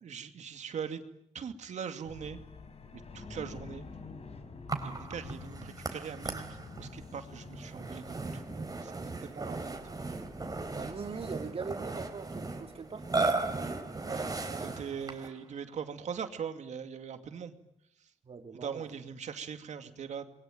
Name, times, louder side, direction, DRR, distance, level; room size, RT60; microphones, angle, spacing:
voice 1, 0.0-1.0 1.3-2.4 2.9-3.8 4.8-9.8 14.0-17.5 18.0-18.1 18.5-20.2, right 7 dB, 85° right, 8 dB, 2.5 m, -41 dB
sound 1, 2.0-14.5, left 4 dB, 60° left, 4.2 m, -50 dB
Burping eructation, 4.7-15.4, right 3 dB, 30° right, 4.0 m, -36 dB
voice 2, 10.7-13.1 18.2-18.8, right 5 dB, 55° right, 6 dB, 3.2 m, -41 dB
27.5 x 22.5 x 9.2 m, 0.75 s
cardioid pair, 80°, 12 cm